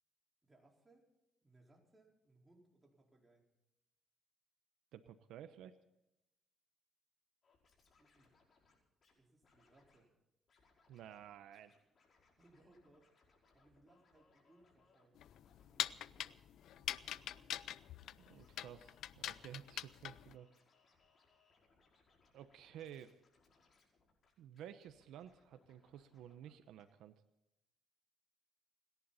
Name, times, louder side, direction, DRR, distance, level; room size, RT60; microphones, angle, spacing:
voice 1, 0.4-1.1 1.4-3.4 8.0-8.3 9.1-10.1 12.4-13.1 13.5-15.2 15.6-17.6, right 2 dB, 15° right, -1 dB, 4.5 m, -69 dB
voice 2, 4.9-5.8 10.9-11.7 18.3-20.5 22.3-23.1 24.4-27.2, right 10 dB, 85° right, 10 dB, 0.8 m, -53 dB
Scratching (performance technique), 7.4-9.1 9.4-10.0 10.5-11.3 11.5-26.5 26.8-26.9, left 4 dB, 45° left, 5.3 m, -73 dB
sound 1, 15.2-20.3, left 11 dB, 75° left, 0.5 m, -43 dB
29.5 x 11.0 x 4.2 m, 0.88 s
cardioid pair, 105°, 0 cm